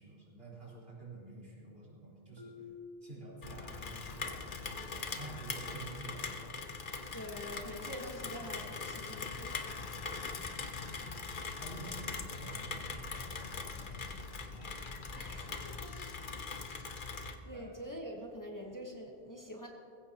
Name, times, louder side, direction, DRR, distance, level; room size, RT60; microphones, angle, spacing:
voice 1, 0.0-2.7 3.0-6.5 10.0-11.0 11.5-14.8 17.5-17.7, right 2 dB, 65° right, -7 dB, 4.8 m, -50 dB
Marimba xylophone, 2.4-4.1, left 5 dB, 25° right, 1.3 m, -52 dB
Rain, 3.4-17.4, left 4 dB, 55° left, 1.0 m, -41 dB
voice 2, 7.1-9.8 15.1-17.1 17.4-19.7, equal, 20° left, 0 dB, 1.4 m, -46 dB
20.5 x 16.0 x 3.0 m, 2.5 s
omnidirectional pair, 1.1 m